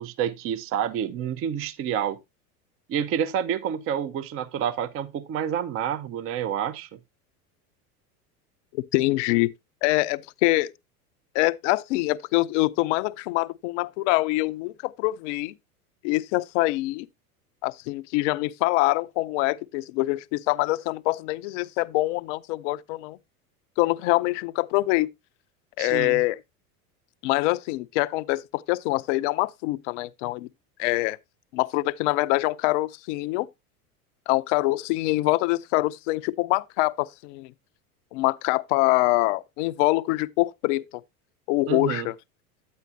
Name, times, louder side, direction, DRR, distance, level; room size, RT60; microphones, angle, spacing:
voice 1, 0.0-2.2 2.9-6.9 25.8-26.2 41.7-42.1, right 9 dB, 30° right, 0.6 m, -28 dB
voice 2, 8.7-9.5 9.8-10.7 11.3-15.5 16.0-17.1 17.6-23.2 23.8-25.1 25.8-26.4 27.2-30.5 30.8-31.2 31.5-33.5 34.3-37.5 38.1-40.9 41.5-42.1, left 20 dB, 55° left, 0.6 m, -24 dB
9.5 x 8.8 x 2.6 m
hypercardioid pair, 85°, 45 cm